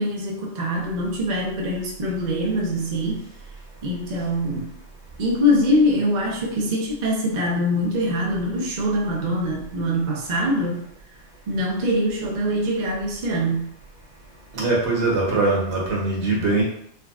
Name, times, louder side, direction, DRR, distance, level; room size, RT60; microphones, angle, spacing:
voice 1, 0.0-3.3 3.8-4.7 5.2-10.9 11.5-13.7, equal, 50° right, -2 dB, 0.5 m, -23 dB
voice 2, 14.5-16.6, right 3 dB, 65° right, -4 dB, 1.2 m, -21 dB
3.5 x 2.2 x 2.3 m, 0.67 s
omnidirectional pair, 1.3 m